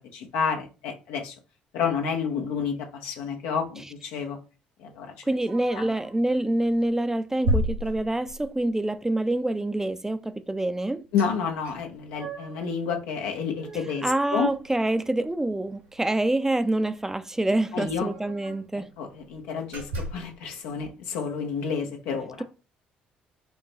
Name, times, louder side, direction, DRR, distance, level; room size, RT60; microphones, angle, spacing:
voice 1, 0.1-1.3 1.7-4.4 4.8-5.1 5.7-5.8 11.1-14.5 17.7-18.1 19.0-22.4, left 6 dB, 80° left, 0.8 m, -30 dB
voice 2, 5.3-11.0 14.0-18.9, right 1 dB, 10° right, 0.4 m, -26 dB
sound 1, 5.5-6.2 6.7-6.9 7.4-8.6 11.2-11.3 11.6-12.7 13.1-14.9 15.2-15.3 15.7-15.9 17.0-17.1 17.3-17.4 17.8-18.7 19.2-19.3 19.7-20.3, equal, 90° right, 2.2 m, -33 dB
4.6 x 2.2 x 4.0 m
hypercardioid pair, 60°, 4 cm